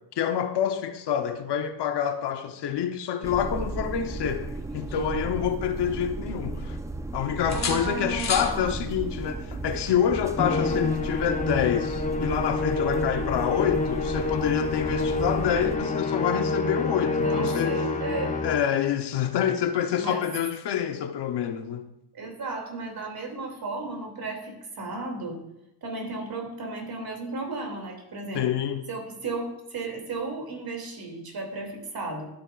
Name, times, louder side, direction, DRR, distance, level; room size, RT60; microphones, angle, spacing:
voice 1, 0.2-6.8 7.1-17.8 18.4-21.9 28.3-28.8, left 9 dB, 65° left, 0.9 m, -27 dB
sound 1, 3.2-15.8, right 2 dB, 5° right, 0.4 m, -35 dB
sound 2, 4.4-5.9 6.3-7.1 7.5-8.6 10.4-10.6, left 5 dB, 35° left, 1.5 m, -35 dB
voice 2, 7.5-8.7 17.0-18.4 20.0-20.2 22.1-25.4 25.8-28.5 28.9-32.3, right 3 dB, 55° right, 2.7 m, -34 dB
Musical instrument, 10.4-18.8, left 3 dB, 15° left, 0.9 m, -28 dB
12.5 x 8.7 x 2.5 m
cardioid pair, 100°, 45 cm